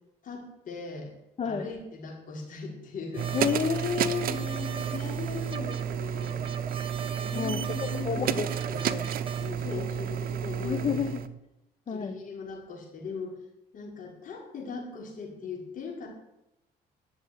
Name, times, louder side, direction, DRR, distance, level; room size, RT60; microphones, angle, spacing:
voice 1, 0.2-1.1 1.4-3.4 4.3-6.4 7.2-8.4 9.4-11.2 11.9-13.4 13.7-16.1, left 4 dB, 50° left, -1 dB, 5.5 m, -39 dB
voice 2, 1.4-1.7 3.3-4.4 7.3-9.1 10.6-11.3 11.9-12.2, left 6 dB, 35° left, 6 dB, 1.2 m, -31 dB
sound 1, 3.1-9.5, right 6 dB, 30° right, 0.8 m, -40 dB
sound 2, 3.2-11.3, right 9 dB, 60° right, 0.9 m, -31 dB
13.0 x 7.3 x 9.9 m, 0.88 s
cardioid pair, 110°, 17 cm